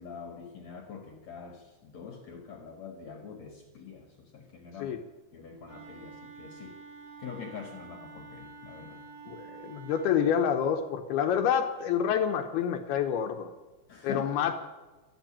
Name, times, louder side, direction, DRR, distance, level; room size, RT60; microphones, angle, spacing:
voice 1, 0.0-5.0 5.3-6.8 7.2-9.0 13.9-14.2, left 6 dB, 55° left, 3 dB, 2.3 m, -44 dB
Wind instrument woodwind instrument, 5.7-10.5, right 4 dB, 80° right, 4.6 m, -48 dB
voice 2, 9.3-13.5 14.0-14.6, left 8 dB, 75° left, 5 dB, 2.6 m, -28 dB
13.5 x 12.0 x 8.8 m, 1.2 s
omnidirectional pair, 4.9 m